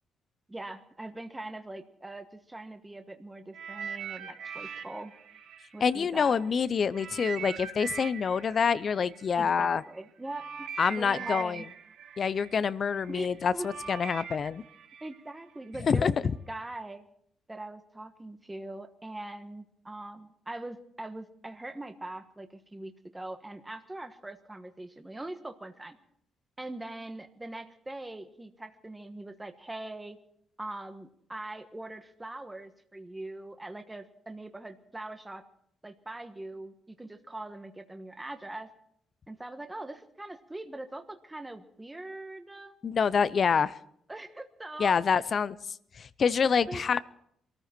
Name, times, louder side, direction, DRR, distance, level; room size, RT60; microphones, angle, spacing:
voice 1, 0.5-5.1 5.7-6.3 9.4-11.7 13.1-13.7 15.0-17.0 17.5-26.0 26.6-30.2 30.6-35.4 35.8-38.7 39.3-42.7 44.1-45.2 46.4-46.8, right 2 dB, 15° right, 7 dB, 1.2 m, -42 dB
sound 1, 3.5-6.5 6.9-15.9 16.6-16.8, right 7 dB, 70° right, 1.3 m, -42 dB
voice 2, 5.8-9.8 10.8-11.6 12.2-14.6 15.8-16.1 42.8-43.7 44.8-45.6 46.0-47.0, left 6 dB, 50° left, 17 dB, 0.6 m, -26 dB
22.5 x 14.0 x 4.5 m, 0.70 s
cardioid pair, 90°, 0 cm